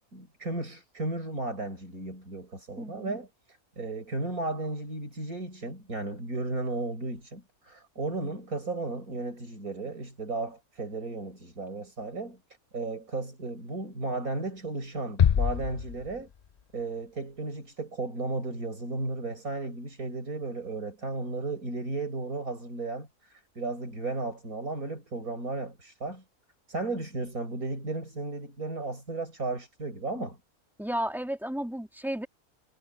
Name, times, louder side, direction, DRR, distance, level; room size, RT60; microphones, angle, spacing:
voice 1, 0.1-12.4 12.7-16.3 16.7-26.2 26.7-30.4, right 3 dB, 70° right, 6.7 m, -34 dB
voice 2, 2.8-3.2 30.8-32.3, equal, ahead, 2.8 m, -33 dB
sound 1, 15.2-16.8, left 8 dB, 90° left, 0.3 m, -26 dB
omnidirectional pair, 1.6 m